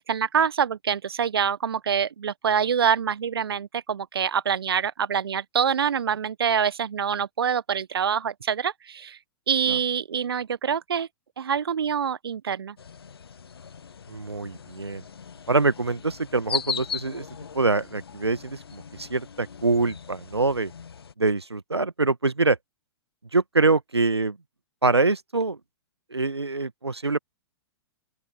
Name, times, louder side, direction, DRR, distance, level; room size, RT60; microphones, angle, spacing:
voice 1, 0.0-9.2 9.5-11.1 11.4-12.7, right 7 dB, 65° right, 1.1 m, -25 dB
sound 1, 12.8-21.1, left 6 dB, 70° left, 1.3 m, -38 dB
voice 2, 14.1-15.0 15.5-17.2 17.5-20.7 21.2-22.6 23.3-24.4 24.8-25.6 26.1-27.2, right 3 dB, 85° right, 1.5 m, -24 dB
open air
figure-of-eight pair, 110°, 13 cm